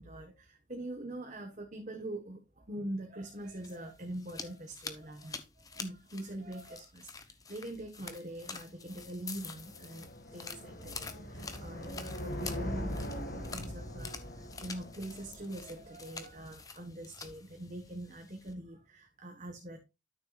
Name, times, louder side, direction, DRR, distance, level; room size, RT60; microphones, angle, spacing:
voice 1, 0.0-7.1 7.5-19.8, right 1 dB, 40° right, 1.4 m, -43 dB
sound 1, 3.3-18.5, left 5 dB, 20° left, 0.9 m, -48 dB
sound 2, 8.9-16.2, equal, 50° left, 2.1 m, -42 dB
12.5 x 6.7 x 2.5 m
head